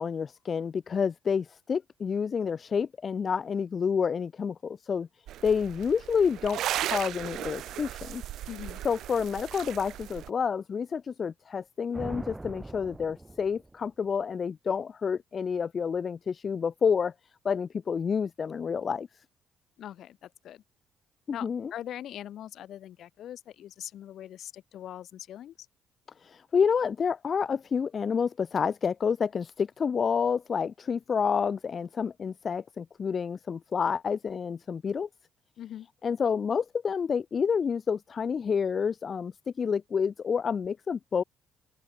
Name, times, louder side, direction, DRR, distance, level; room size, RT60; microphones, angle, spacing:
voice 1, 0.0-5.1 5.4-8.2 8.8-17.1 17.4-19.1 21.3-21.7 26.2-35.1 36.0-41.2, left 6 dB, 45° left, 0.9 m, -29 dB
sound 1, 5.3-10.3, right 13 dB, 65° right, 0.7 m, -36 dB
voice 2, 8.5-8.8 19.8-20.6 21.3-25.5 35.6-35.9, left 11 dB, 60° left, 2.2 m, -42 dB
sound 2, 11.9-13.9, right 2 dB, 15° right, 4.5 m, -41 dB
open air
hypercardioid pair, 45°, 0 cm